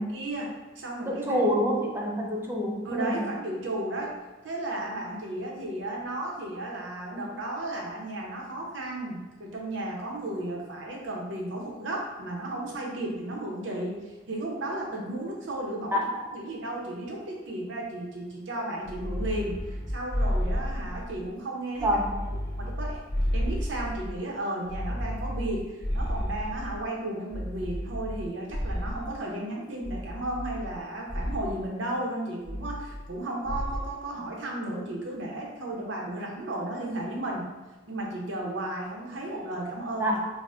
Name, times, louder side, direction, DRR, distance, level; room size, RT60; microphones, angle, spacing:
voice 1, 0.1-1.4 2.8-4.1 4.4-21.9 22.5-23.0 23.3-37.5 37.9-40.2, right 1 dB, 70° right, -1 dB, 0.7 m, -34 dB
voice 2, 1.1-3.2 15.9-16.2 21.8-22.3 40.0-40.3, equal, 10° right, -1 dB, 0.3 m, -27 dB
sound 1, 18.8-21.3 21.7-24.2 24.7-26.8 27.3-29.2 29.8-30.8 31.1-31.6 32.4-33.2 33.5-33.9, equal, 20° left, 1.3 m, -32 dB
4.1 x 2.1 x 2.4 m, 1.2 s
head